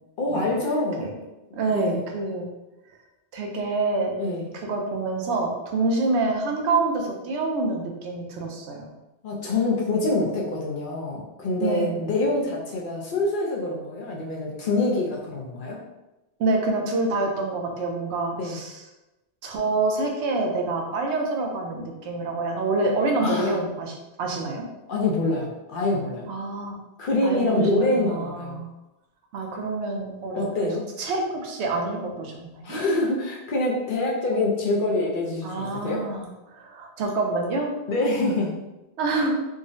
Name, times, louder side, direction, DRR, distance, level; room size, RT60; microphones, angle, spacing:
voice 1, 0.2-1.0 1.7-2.0 4.2-4.5 9.2-15.8 18.4-18.6 23.2-23.6 24.9-26.3 27.0-28.6 30.3-30.8 32.6-36.2 37.9-38.6, left 2 dB, 60° left, -3 dB, 0.7 m, -25 dB
voice 2, 1.5-2.5 3.3-4.1 4.5-8.9 11.6-12.0 16.4-18.8 19.4-24.6 26.3-26.8 27.2-28.7 29.3-30.7 31.0-32.8 35.4-36.3 36.5-37.7 39.0-39.3, right 3 dB, 85° right, 1 dB, 0.9 m, -27 dB
3.6 x 2.0 x 2.5 m, 1.0 s
omnidirectional pair, 1.1 m